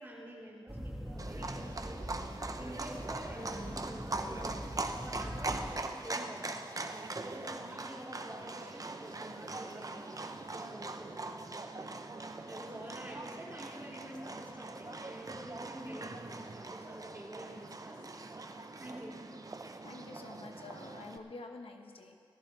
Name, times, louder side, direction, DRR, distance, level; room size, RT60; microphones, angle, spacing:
voice 1, 0.0-2.1 2.6-6.6 7.2-10.2 10.5-11.5 12.5-18.2 18.8-19.2, equal, 25° right, -6 dB, 4.0 m, -48 dB
sound 1, 0.7-5.8, equal, 5° right, 1.5 m, -43 dB
Livestock farm animals working animals, 1.2-21.2, right 2 dB, 40° right, 0.7 m, -42 dB
voice 2, 19.8-22.2, left 3 dB, 90° left, 4 dB, 1.1 m, -48 dB
19.0 x 14.5 x 3.3 m, 2.2 s
wide cardioid pair, 70°, 9 cm